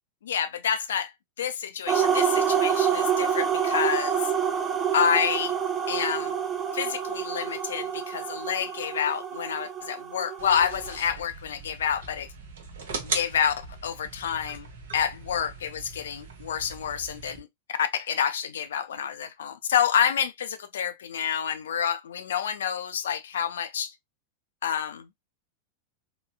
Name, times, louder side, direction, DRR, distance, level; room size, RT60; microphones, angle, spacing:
voice 1, 0.2-1.1 1.4-4.2 4.9-5.5 5.9-6.3 6.7-12.3 13.0-13.5 13.8-14.7 14.9-17.5 17.8-23.9 24.6-25.1, left 8 dB, 65° left, 0.4 m, -28 dB
sound 1, 1.9-11.0, right 7 dB, 20° right, 0.5 m, -27 dB
sound 2, 10.4-17.4, right 4 dB, 60° right, 0.8 m, -39 dB
3.8 x 2.2 x 2.3 m
figure-of-eight pair, 90°, 0 cm